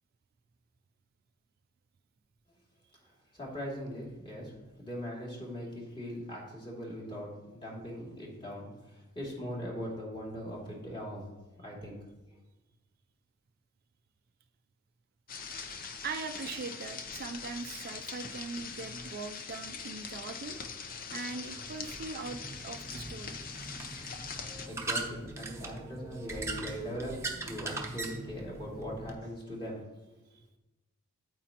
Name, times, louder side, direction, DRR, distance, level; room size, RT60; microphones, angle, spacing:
voice 1, 3.3-11.3 11.6-12.0 24.7-29.8, equal, 25° left, -4 dB, 2.7 m, -40 dB
sound 1, 15.3-24.7, left 5 dB, 40° left, 0.7 m, -42 dB
voice 2, 16.0-20.6 21.1-23.4, right 4 dB, 45° right, 7 dB, 0.4 m, -41 dB
sound 2, 22.2-29.1, right 3 dB, 15° right, 0.9 m, -40 dB
9.1 x 8.3 x 2.9 m, 1.0 s
head